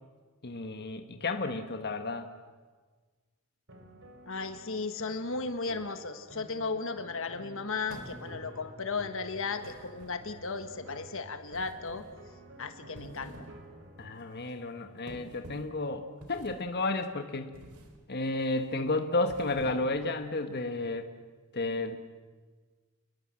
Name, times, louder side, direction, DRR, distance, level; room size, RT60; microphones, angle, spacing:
voice 1, 0.4-2.3 14.0-17.5 18.1-21.1 21.5-22.0, left 2 dB, 50° left, 7 dB, 1.5 m, -32 dB
sound 1, 3.7-14.1, right 1 dB, 60° right, 4.0 m, -51 dB
voice 2, 4.3-12.0 12.6-13.3, left 4 dB, 65° left, 9 dB, 1.6 m, -35 dB
sound 2, 7.9-8.6 9.6-10.5 11.5-12.2 12.8-13.6 14.0-14.2 15.1-15.8 16.2-16.8 17.5-18.0 18.4-18.7 19.2-20.0, right 1 dB, 85° right, 3.4 m, -49 dB
29.5 x 21.5 x 7.6 m, 1.4 s
head